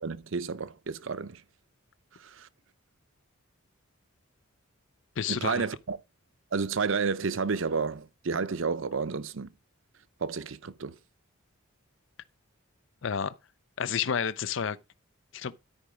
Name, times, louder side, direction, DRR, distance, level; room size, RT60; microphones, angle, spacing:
voice 1, 0.0-1.4 2.4-2.5 5.3-6.0 6.5-9.5 10.2-11.0, right 4 dB, 65° right, 0.7 m, -31 dB
voice 2, 5.2-5.6 13.0-13.3 13.8-14.8 15.3-15.5, left 7 dB, 60° left, 0.5 m, -30 dB
13.0 x 4.9 x 5.0 m
head